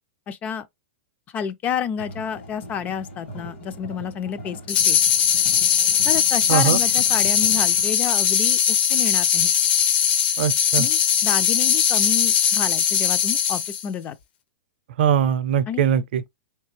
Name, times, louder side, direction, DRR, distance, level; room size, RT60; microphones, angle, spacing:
voice 1, 0.3-0.7 1.3-5.0 6.0-9.5 10.7-14.2 15.7-15.9, left 8 dB, 25° left, 0.3 m, -30 dB
sound 1, 2.0-7.9, left 1 dB, 75° left, 2.0 m, -40 dB
sound 2, 4.7-13.8, left 9 dB, 60° left, 0.7 m, -20 dB
voice 2, 10.4-10.9 15.0-16.2, right 9 dB, 65° right, 0.5 m, -21 dB
3.3 x 3.1 x 3.2 m
hypercardioid pair, 140°, 6 cm